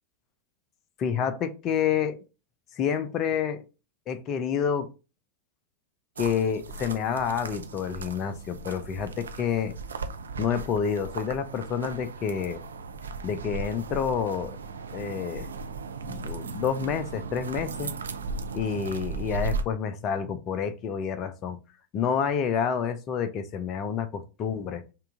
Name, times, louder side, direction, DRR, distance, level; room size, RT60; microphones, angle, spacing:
voice 1, 1.0-2.2 2.7-3.6 4.1-4.9 6.2-9.7 10.4-12.6 13.2-14.5 14.9-15.5 16.0-17.9 18.5-21.6 21.9-24.8, left 7 dB, 35° left, 11 dB, 0.6 m, -28 dB
sound 1, 6.2-19.6, right 4 dB, 70° right, 0.5 m, -36 dB
5.6 x 2.5 x 3.6 m, 0.32 s
figure-of-eight pair, 90°, 0 cm